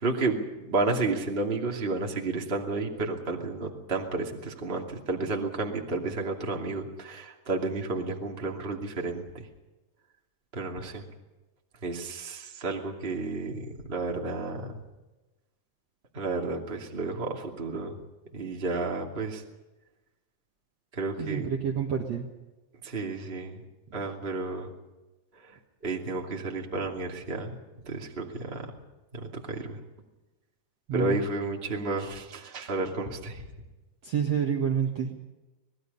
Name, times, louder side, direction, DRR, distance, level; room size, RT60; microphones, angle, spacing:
voice 1, 0.0-9.4 10.5-11.0 11.8-14.8 16.1-17.9 18.3-19.4 20.9-21.5 22.8-23.6 23.9-24.7 25.8-27.6 27.8-28.7 29.1-29.8 30.9-33.4, right 3 dB, 20° right, 1 dB, 2.0 m, -31 dB
voice 2, 21.2-22.2 30.9-31.2 34.1-35.2, right 7 dB, 55° right, 1 dB, 2.2 m, -28 dB
26.0 x 19.5 x 5.5 m, 1.1 s
omnidirectional pair, 4.7 m